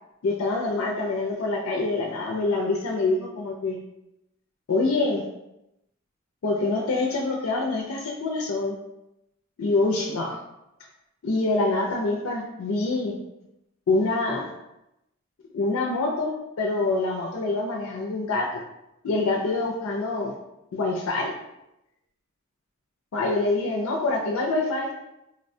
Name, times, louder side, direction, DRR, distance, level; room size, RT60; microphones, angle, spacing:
voice 1, 0.2-3.8 4.7-5.2 6.4-8.8 9.6-10.4 11.2-13.2 13.9-14.5 15.5-18.6 19.0-20.3 20.7-21.3 23.1-24.9, left 3 dB, 75° left, 0 dB, 0.4 m, -25 dB
4.0 x 2.1 x 2.6 m, 0.88 s
head